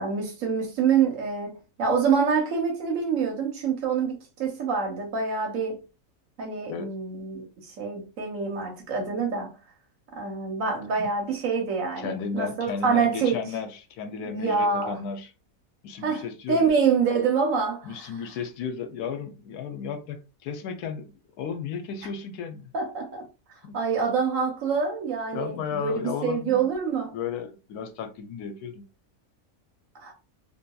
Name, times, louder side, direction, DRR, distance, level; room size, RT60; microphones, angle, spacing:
voice 1, 0.0-5.8 6.4-9.6 10.1-13.4 14.3-15.0 16.0-18.1 22.7-23.2 23.7-27.2 30.0-30.1, right 5 dB, 65° right, 1.1 m, -26 dB
voice 2, 12.0-15.3 15.8-16.7 17.8-21.1 21.4-22.7 23.6-23.8 25.3-26.7 27.1-28.9, left 6 dB, 85° left, 1.1 m, -34 dB
2.7 x 2.6 x 2.2 m
omnidirectional pair, 1.6 m